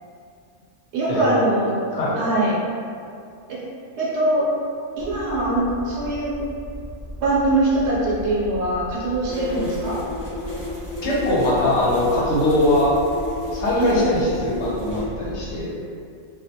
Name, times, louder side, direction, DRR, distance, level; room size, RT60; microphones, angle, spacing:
voice 1, 0.9-1.7 2.2-2.6 3.5-3.6 4.0-4.4 5.0-6.3 7.2-10.0 13.8-14.0, right 2 dB, 65° right, -7 dB, 0.9 m, -22 dB
Aircraft, 5.0-15.6, equal, 35° right, 0.8 m, -37 dB
sound 1, 9.3-15.0, left 2 dB, 35° left, 0.4 m, -33 dB
voice 2, 11.0-13.0 13.5-15.7, left 1 dB, 65° left, -6 dB, 0.8 m, -21 dB
2.3 x 2.1 x 2.7 m, 2.4 s
omnidirectional pair, 1.3 m